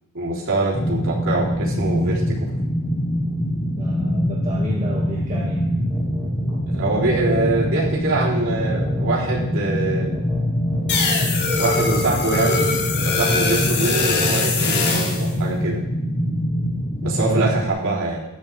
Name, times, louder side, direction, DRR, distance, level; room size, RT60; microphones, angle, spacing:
voice 1, 0.1-2.4 6.7-10.1 11.1-11.2 11.6-12.7 13.0-15.8 17.0-18.2, right 2 dB, 65° right, -5 dB, 3.8 m, -24 dB
sound 1, 0.7-17.7, equal, 25° left, 1.3 m, -24 dB
voice 2, 3.8-5.6 6.5-6.6 17.2-17.5, left 1 dB, 35° right, -5 dB, 2.2 m, -30 dB
sound 2, 5.9-14.0, equal, 20° right, 2.4 m, -36 dB
sound 3, 10.9-15.3, left 4 dB, 50° left, 2.5 m, -22 dB
15.5 x 11.0 x 3.6 m, 0.89 s
head